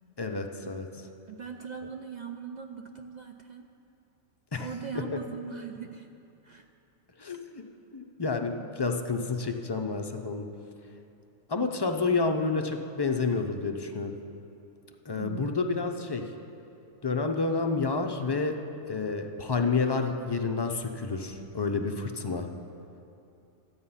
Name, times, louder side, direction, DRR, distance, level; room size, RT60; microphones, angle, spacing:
voice 1, 0.2-0.9 4.5-4.7 4.9-5.0 7.2-7.6 7.9-10.5 11.5-14.2 15.1-16.2 17.0-18.6 18.9-22.5, left 4 dB, 35° left, 5 dB, 0.4 m, -29 dB
voice 2, 1.3-3.7 4.6-6.1 6.4-6.7 15.1-15.6, right 6 dB, 60° right, 4 dB, 0.4 m, -40 dB
12.5 x 8.7 x 5.6 m, 2.7 s
omnidirectional pair, 1.3 m